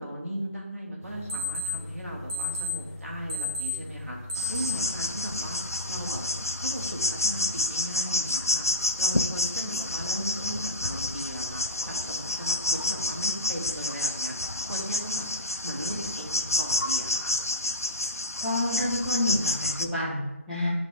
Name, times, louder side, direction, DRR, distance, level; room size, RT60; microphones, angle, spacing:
voice 1, 0.0-4.2 4.5-5.6 5.9-6.2 6.6-8.7 9.0-17.4, right 1 dB, 75° right, -2 dB, 2.2 m, -37 dB
sound 1, 1.0-7.5, left 2 dB, 30° right, 1.7 m, -35 dB
sound 2, 4.3-19.9, left 2 dB, 90° left, 0.5 m, -29 dB
voice 2, 18.4-20.7, left 1 dB, 5° right, -14 dB, 1.1 m, -28 dB
8.8 x 4.1 x 3.6 m, 1.0 s
figure-of-eight pair, 170°, 8 cm